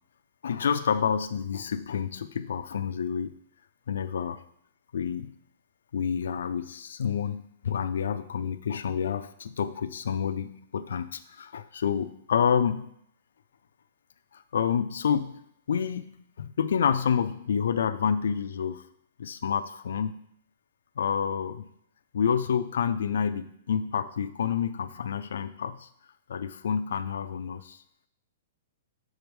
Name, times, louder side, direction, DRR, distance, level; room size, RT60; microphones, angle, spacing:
voice 1, 0.4-3.4 3.9-4.4 4.9-5.3 5.9-12.9 14.3-15.4 15.7-18.8 19.2-20.2 21.0-21.7 22.1-25.9 26.3-27.8, left 7 dB, 80° left, 10 dB, 0.4 m, -28 dB
6.3 x 4.6 x 5.2 m, 0.70 s
hypercardioid pair, 170°, 0 cm